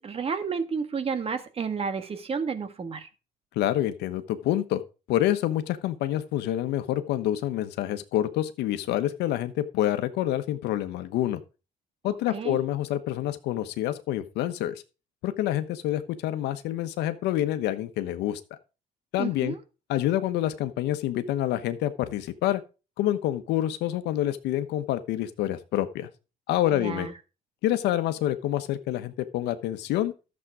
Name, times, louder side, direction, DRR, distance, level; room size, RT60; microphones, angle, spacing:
voice 1, 0.0-3.1 12.1-12.6 19.2-19.6 26.7-27.1, right 5 dB, 35° right, 1.7 m, -31 dB
voice 2, 3.6-4.8 5.1-11.4 12.0-14.7 15.2-18.4 19.1-19.5 19.9-22.6 23.0-26.1 26.5-27.1 27.6-30.1, left 13 dB, 85° left, 1.2 m, -27 dB
12.0 x 7.5 x 4.9 m
cardioid pair, 110°, 17 cm